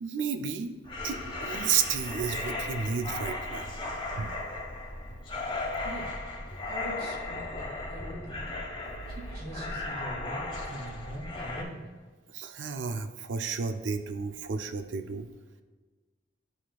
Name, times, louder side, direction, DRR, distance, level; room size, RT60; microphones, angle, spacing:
voice 1, 0.0-0.8 1.0-3.8 4.2-4.3 12.3-15.3, right 6 dB, 70° right, 8 dB, 0.5 m, -32 dB
sound 1, 0.8-11.6, left 2 dB, 25° left, 1.3 m, -36 dB
voice 2, 5.8-6.2 6.7-8.5 9.1-11.9, right 1 dB, 55° right, -2 dB, 1.7 m, -42 dB
11.5 x 4.3 x 2.3 m, 1.3 s
head